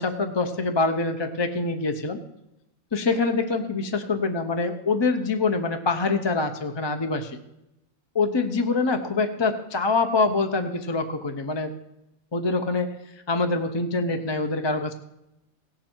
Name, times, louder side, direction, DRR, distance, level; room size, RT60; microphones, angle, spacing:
voice 1, 0.0-2.2 2.9-7.4 8.1-11.7 12.3-12.9 13.3-14.9, left 3 dB, 30° left, 6 dB, 0.5 m, -25 dB
18.5 x 6.2 x 4.5 m, 0.89 s
omnidirectional pair, 1.5 m